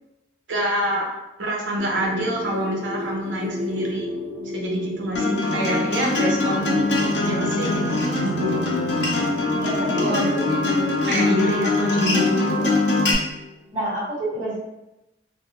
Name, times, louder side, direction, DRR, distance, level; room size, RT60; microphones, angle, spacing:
voice 1, 0.5-1.1 1.4-4.1 4.4-6.8 7.2-8.8 10.0-12.7, equal, 80° right, -1 dB, 0.6 m, -27 dB
sound 1, 1.8-13.7, left 1 dB, ahead, 0.4 m, -34 dB
Acoustic guitar, 5.1-13.1, left 2 dB, 70° left, 0.5 m, -22 dB
voice 2, 9.6-10.3 13.7-14.6, right 1 dB, 30° right, -12 dB, 1.4 m, -28 dB
2.5 x 2.0 x 2.8 m, 0.93 s
head